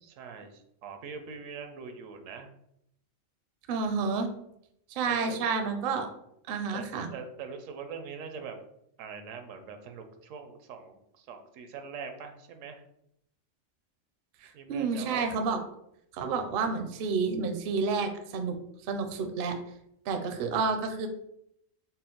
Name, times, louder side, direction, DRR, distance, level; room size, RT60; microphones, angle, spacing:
voice 1, 0.0-2.5 5.1-5.4 6.7-8.6 9.0-12.8 14.5-15.3, right 5 dB, 80° right, 6 dB, 0.9 m, -42 dB
voice 2, 3.7-4.3 4.9-6.1 6.5-7.1 14.4-15.6 16.1-19.6 20.1-21.1, right 4 dB, 60° right, 6 dB, 0.6 m, -30 dB
4.2 x 2.0 x 3.8 m, 0.75 s
omnidirectional pair, 1.3 m